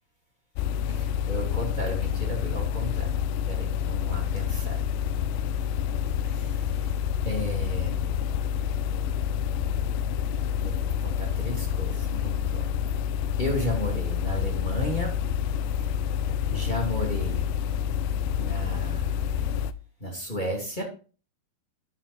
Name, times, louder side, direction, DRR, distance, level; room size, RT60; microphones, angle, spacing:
sound 1, 0.6-19.7, left 8 dB, 90° left, 2.8 m, -28 dB
voice 1, 0.9-3.1 3.5-4.8 6.2-6.9 7.2-8.0 10.6-12.7 13.4-15.2 16.5-17.4 18.4-19.2 20.0-20.8, equal, 20° left, 0 dB, 1.4 m, -33 dB
10.0 x 7.3 x 4.2 m, 0.36 s
omnidirectional pair, 5.0 m